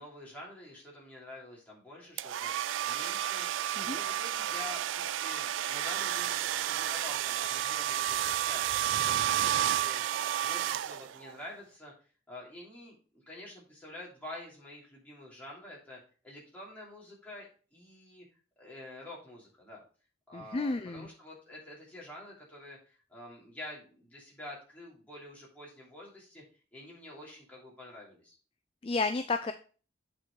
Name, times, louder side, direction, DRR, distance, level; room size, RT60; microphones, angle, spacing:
voice 1, 0.0-11.9 12.3-18.2 18.6-19.8 20.3-26.4 26.7-28.3, left 1 dB, 10° left, -5 dB, 2.9 m, -48 dB
sound 1, 2.2-11.3, right 11 dB, 85° right, 0.3 m, -31 dB
voice 2, 20.3-21.1 28.8-29.5, left 3 dB, 30° left, 9 dB, 0.4 m, -31 dB
8.7 x 4.6 x 4.3 m, 0.38 s
head